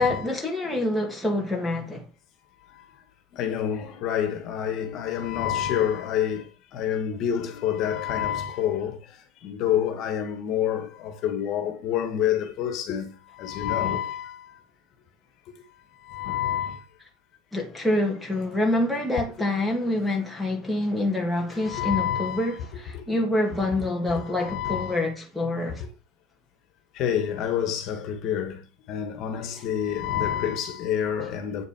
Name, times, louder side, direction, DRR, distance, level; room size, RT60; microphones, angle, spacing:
voice 1, 0.0-2.1 17.5-25.8, left 1 dB, ahead, 2.1 m, -26 dB
voice 2, 3.3-14.6 16.0-16.8 21.5-22.5 22.9-23.0 24.2-25.0 25.8-25.9 26.9-31.7, left 9 dB, 45° left, 2.2 m, -28 dB
8.7 x 6.9 x 4.8 m
cardioid pair, 160°, 0 cm